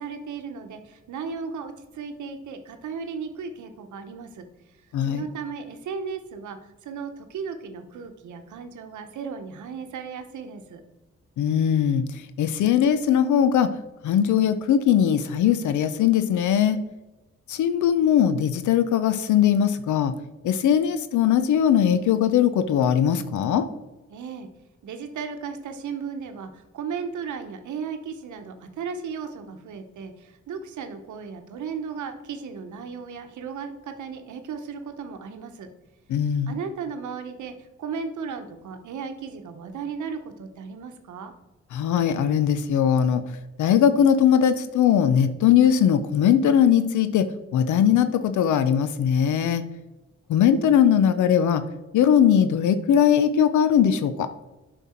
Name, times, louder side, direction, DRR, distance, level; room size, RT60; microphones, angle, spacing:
voice 1, 0.0-4.5 5.0-10.8 24.1-24.5 24.8-35.7 36.5-41.3, right 6 dB, 85° right, 7 dB, 0.9 m, -35 dB
voice 2, 4.9-5.2 11.4-12.1 12.4-13.7 14.0-16.8 17.5-20.1 20.4-23.7 36.1-36.5 41.7-43.2 43.6-49.6 50.3-51.6 51.9-54.3, left 9 dB, 90° left, 12 dB, 0.5 m, -20 dB
8.3 x 5.5 x 4.3 m, 1.1 s
cardioid pair, 70°, 29 cm